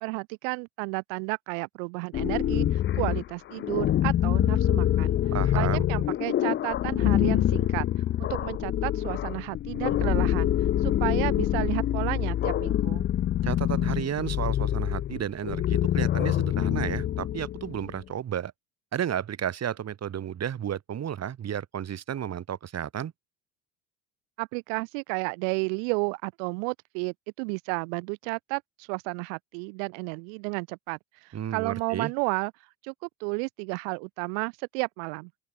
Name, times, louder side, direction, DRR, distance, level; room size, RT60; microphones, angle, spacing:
voice 1, 0.0-5.2 5.5-7.9 8.2-10.5 10.8-13.1 24.4-32.5 32.8-32.9 33.2-35.3, right 40 dB or more, 85° right, 2.2 m, -32 dB
sound 1, 2.1-17.9, left 12 dB, 30° left, 0.4 m, -26 dB
voice 2, 5.3-5.9 13.4-18.5 18.9-23.1 31.3-32.1, right 9 dB, 40° right, 2.6 m, -32 dB
open air
supercardioid pair, 100°, 39 cm